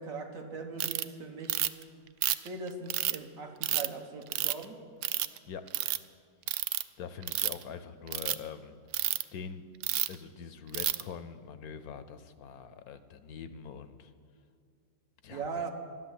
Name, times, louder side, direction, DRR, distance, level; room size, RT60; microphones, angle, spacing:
voice 1, 0.0-1.6 2.4-4.8 15.3-15.7, right 4 dB, 55° right, 4 dB, 1.5 m, -40 dB
Ratchet pawl, 0.8-1.0 1.5-1.8 2.2-3.2 3.6-3.9 4.3-4.6 5.0-5.4 5.7-6.0 6.5-6.8 7.2-7.6 8.1-8.3 8.9-9.2 9.8-10.1 10.7-11.0, right 12 dB, 70° right, 0.7 m, -29 dB
voice 2, 7.0-8.8 9.3-9.6 10.1-14.1 15.2-15.7, left 7 dB, 70° left, 11 dB, 1.0 m, -44 dB
13.0 x 11.5 x 8.1 m, 2.2 s
omnidirectional pair, 1.8 m